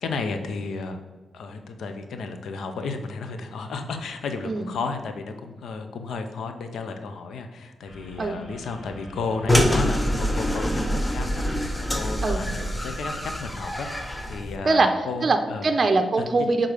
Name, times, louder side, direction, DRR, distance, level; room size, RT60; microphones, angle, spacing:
voice 1, 0.0-1.0 1.3-15.7 16.2-16.3, left 4 dB, 80° left, 7 dB, 0.5 m, -33 dB
sound 1, 7.8-13.3, left 1 dB, 65° left, 1.9 m, -44 dB
sound 2, 9.5-14.6, left 1 dB, 10° left, 0.6 m, -25 dB
voice 2, 14.6-16.7, right 3 dB, 40° right, 6 dB, 0.6 m, -22 dB
6.6 x 3.7 x 4.8 m, 1.3 s
cardioid pair, 100°, 0 cm